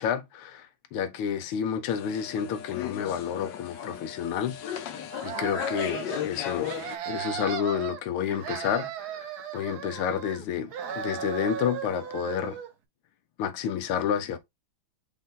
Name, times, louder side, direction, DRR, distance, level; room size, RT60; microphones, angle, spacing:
voice 1, 0.0-4.8 5.2-6.7 7.1-12.6 13.4-14.4, left 8 dB, 85° left, 1.6 m, -30 dB
sound 1, 1.9-7.0, left 9 dB, 65° left, 1.3 m, -36 dB
sound 2, 5.1-6.3 6.6-8.0 8.3-10.4 10.7-12.7, right 9 dB, 65° right, 1.0 m, -36 dB
5.5 x 2.5 x 3.7 m
omnidirectional pair, 2.4 m